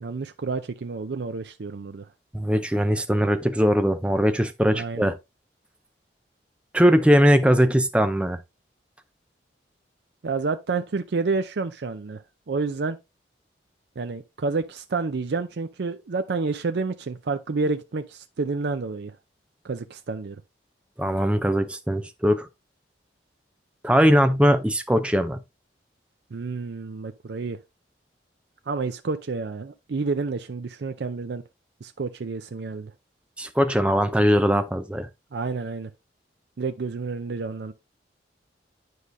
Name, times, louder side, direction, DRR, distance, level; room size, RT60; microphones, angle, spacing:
voice 1, 0.0-2.1 4.7-5.1 10.2-13.0 14.0-19.1 19.6-20.4 26.3-27.6 28.7-31.4 31.8-32.9 35.3-35.9 36.6-37.7, right 4 dB, 65° right, 0.5 m, -29 dB
voice 2, 2.3-5.1 6.7-8.4 21.0-22.5 23.8-25.4 33.4-35.1, equal, 5° right, 0.5 m, -20 dB
9.4 x 4.9 x 2.6 m
head